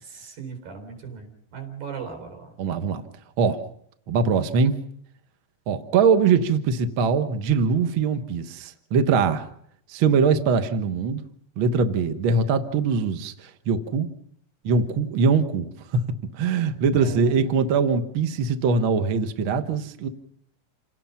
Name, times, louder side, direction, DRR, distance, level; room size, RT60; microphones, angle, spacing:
voice 1, 0.0-2.5 17.0-17.3, right 6 dB, 80° right, 5 dB, 6.0 m, -37 dB
voice 2, 2.6-3.0 3.4-3.6 4.1-4.7 5.7-9.4 9.9-11.2 11.6-14.1 14.6-16.0 16.4-20.1, right 5 dB, 55° right, 8 dB, 1.5 m, -22 dB
28.5 x 18.5 x 5.7 m, 0.70 s
omnidirectional pair, 4.0 m